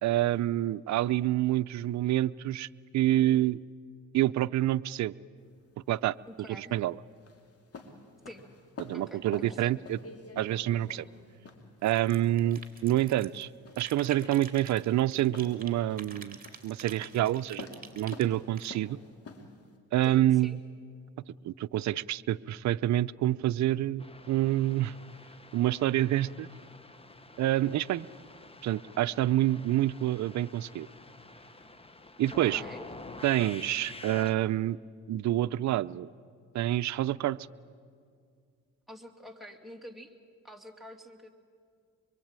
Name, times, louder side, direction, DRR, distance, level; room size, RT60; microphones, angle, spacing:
voice 1, 0.0-2.7 2.9-3.6 4.1-5.1 5.9-6.1 6.5-7.0 8.8-10.0 10.4-11.1 11.8-13.5 13.8-16.4 16.6-17.7 17.9-19.0 19.9-20.6 21.4-24.9 25.5-26.5 27.4-28.1 28.6-30.9 32.2-32.6 33.2-34.8 35.1-36.1 36.5-37.4, right 14 dB, 65° right, 13 dB, 0.6 m, -27 dB
sound 1, 5.4-19.8, left 3 dB, 50° left, 3.1 m, -49 dB
voice 2, 6.3-6.8 8.3-8.4 8.9-9.7 20.0-20.6 32.5-32.9 38.9-40.1 40.4-41.3, equal, ahead, 5 dB, 2.6 m, -47 dB
sound 2, 11.8-13.4 13.7-15.7 16.0-18.7, right 5 dB, 30° right, 3.2 m, -47 dB
sound 3, 24.0-34.3, left 2 dB, 20° left, 1.2 m, -48 dB
24.0 x 23.0 x 8.9 m, 2.2 s
cardioid pair, 90°, 30 cm